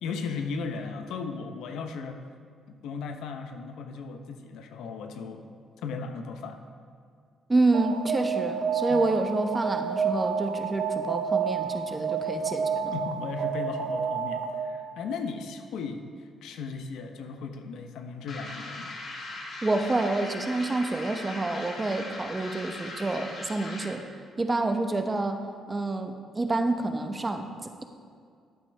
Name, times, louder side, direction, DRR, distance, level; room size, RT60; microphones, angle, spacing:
voice 1, 0.0-2.2 2.7-5.4 5.8-6.6 8.9-9.0 12.9-19.0, left 4 dB, 85° left, 6 dB, 0.8 m, -36 dB
voice 2, 7.5-13.0 19.6-24.0 24.4-25.4 25.7-27.8, right 2 dB, 20° right, 6 dB, 0.9 m, -28 dB
Alarm, 7.7-14.8, right 6 dB, 85° right, 0.7 m, -30 dB
sound 1, 18.3-24.1, left 2 dB, 60° left, 1.8 m, -39 dB
13.5 x 8.6 x 3.4 m, 2.2 s
cardioid pair, 90°, 0 cm